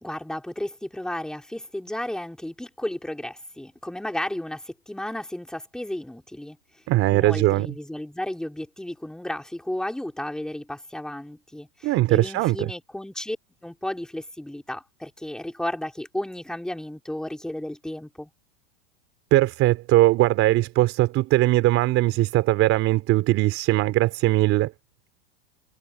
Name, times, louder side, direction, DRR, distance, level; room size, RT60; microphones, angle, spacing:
voice 1, 0.0-6.6 7.1-13.4 13.6-18.3, left 1 dB, ahead, 3.7 m, -33 dB
voice 2, 6.9-7.8 11.8-12.7 19.3-24.7, right 17 dB, 40° right, 3.3 m, -20 dB
supercardioid pair, 145°, 35 cm